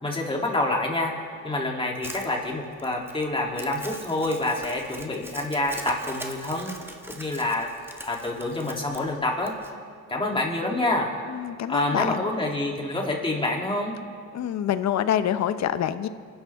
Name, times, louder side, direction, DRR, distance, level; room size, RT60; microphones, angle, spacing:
voice 1, 0.0-1.1 1.4-6.7 7.1-7.7 8.0-9.5 10.1-11.1 11.7-13.9, left 2 dB, 15° left, -1 dB, 2.9 m, -27 dB
Crumpling crinkling, 2.0-9.7, right 1 dB, 5° right, 1.3 m, -42 dB
voice 2, 11.3-12.2 14.3-16.1, left 10 dB, 55° left, 12 dB, 0.8 m, -26 dB
25.5 x 11.0 x 3.6 m, 2.2 s
cardioid pair, 90°, 32 cm